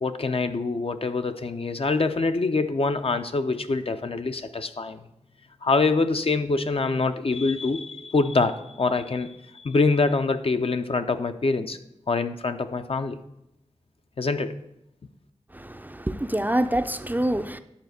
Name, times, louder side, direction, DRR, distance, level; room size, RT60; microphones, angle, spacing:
voice 1, 0.0-5.0 5.6-11.8 12.1-13.2 14.2-14.5, left 3 dB, 50° left, 0.6 m, -25 dB
voice 2, 15.5-17.6, right 1 dB, 15° right, 0.4 m, -26 dB
10.5 x 4.2 x 6.6 m
wide cardioid pair, 70°, 12 cm